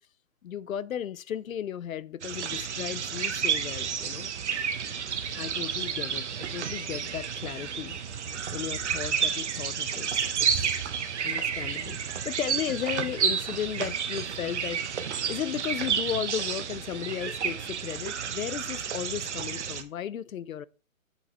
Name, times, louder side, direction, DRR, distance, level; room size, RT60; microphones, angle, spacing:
voice 1, 0.4-4.3 5.3-8.0 8.5-10.8 11.2-14.8 15.3-20.7, left 10 dB, 80° left, 0.6 m, -35 dB
sound 1, 2.2-19.8, right 7 dB, 55° right, 0.9 m, -31 dB
8.1 x 4.1 x 3.3 m
hypercardioid pair, 150°, 41 cm